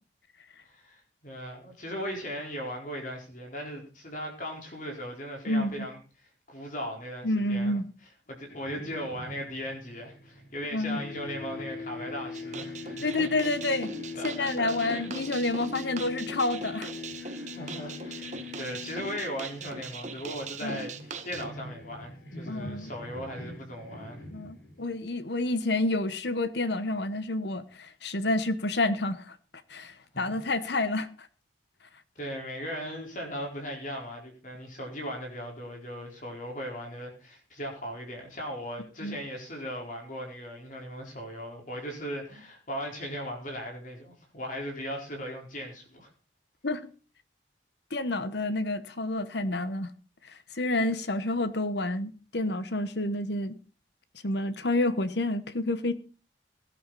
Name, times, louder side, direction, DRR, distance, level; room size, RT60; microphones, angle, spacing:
voice 1, 0.6-7.7 8.3-13.3 14.1-15.0 17.5-24.2 30.1-30.4 32.2-46.1, equal, 45° left, 4.4 m, -38 dB
voice 2, 5.5-5.9 7.2-7.8 10.7-11.0 13.0-13.9 14.2-16.9 20.6-20.8 22.5-22.9 24.3-29.4 29.7-31.1 39.0-39.2 46.6-46.9 47.9-49.9 50.2-53.5 54.2-55.9, left 2 dB, 65° left, 1.1 m, -29 dB
sound 1, 8.5-10.7 10.9-24.9, left 4 dB, 80° left, 6.3 m, -42 dB
sound 2, 12.3-21.5, right 4 dB, 40° right, 1.5 m, -41 dB
17.5 x 11.5 x 4.1 m
head